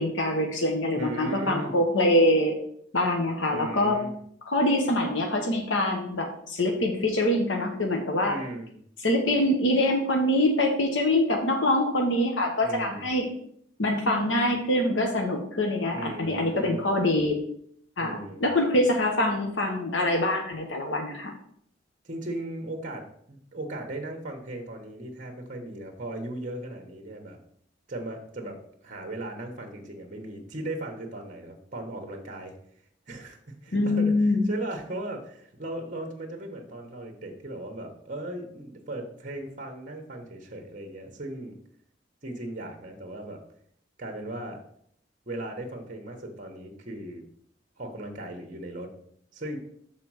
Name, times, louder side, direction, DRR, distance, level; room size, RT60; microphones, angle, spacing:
voice 1, 0.0-2.5 2.9-4.0 4.4-8.4 9.0-13.3 13.8-17.4 18.0-21.3 33.7-34.4, left 1 dB, 80° left, 3 dB, 1.1 m, -24 dB
voice 2, 0.9-1.7 3.5-4.1 8.3-8.7 12.6-13.1 15.9-16.8 18.0-18.4 22.0-27.4 27.9-32.5 33.1-41.5 42.2-43.4 44.0-44.6 45.3-47.2 47.8-48.9 49.3-49.6, right 1 dB, 45° right, 4 dB, 1.1 m, -37 dB
6.7 x 4.1 x 6.2 m, 0.67 s
head